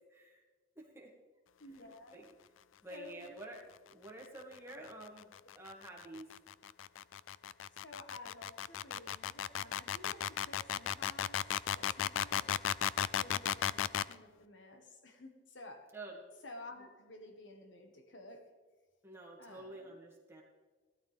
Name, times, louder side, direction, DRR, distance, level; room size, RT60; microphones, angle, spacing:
voice 1, 0.1-0.4 0.8-1.1 2.1-2.3 2.8-3.6 3.9-6.3 15.9-16.2 19.0-20.4, right 2 dB, 15° right, -2 dB, 2.1 m, -49 dB
voice 2, 1.6-2.3 2.9-3.4 7.8-11.4 11.7-12.6 13.1-15.9 16.4-18.5 19.4-20.0, left 2 dB, 65° left, 5 dB, 1.6 m, -53 dB
sound 1, 4.9-14.1, left 10 dB, 80° left, 0.4 m, -35 dB
16.5 x 12.5 x 3.5 m, 1.3 s
head